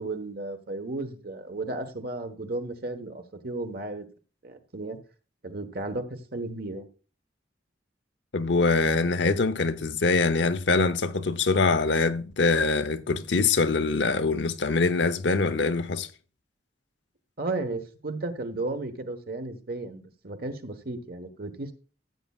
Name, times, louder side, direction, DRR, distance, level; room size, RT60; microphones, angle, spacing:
voice 1, 0.0-4.0 4.4-5.0 5.4-6.9 17.4-21.7, right 2 dB, 55° right, 1.3 m, -34 dB
voice 2, 8.3-16.1, left 3 dB, 80° left, 0.8 m, -24 dB
15.0 x 8.4 x 2.4 m
head